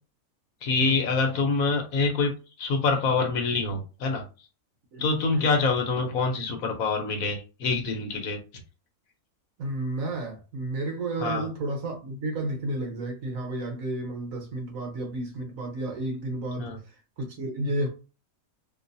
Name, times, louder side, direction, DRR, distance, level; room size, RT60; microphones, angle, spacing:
voice 1, 0.6-2.3 2.6-4.2 5.0-8.4 11.2-11.5 16.6-16.8, left 4 dB, 75° left, 1.3 m, -25 dB
voice 2, 9.6-16.8 17.2-17.9, right 1 dB, 70° right, 1.4 m, -32 dB
3.7 x 2.5 x 2.6 m
omnidirectional pair, 1.5 m